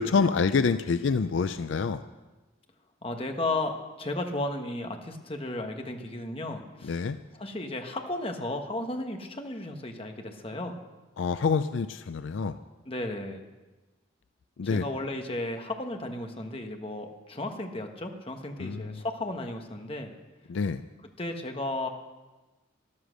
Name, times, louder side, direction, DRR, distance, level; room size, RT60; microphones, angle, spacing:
voice 1, 0.0-2.0 6.8-7.2 11.2-12.6 14.6-14.8 18.6-19.0 20.5-20.8, left 5 dB, 65° left, 12 dB, 0.4 m, -27 dB
voice 2, 3.0-7.1 7.3-10.7 12.8-13.4 14.6-20.1 21.2-21.9, left 2 dB, 25° left, 4 dB, 1.2 m, -34 dB
13.0 x 12.0 x 6.4 m, 1.2 s
head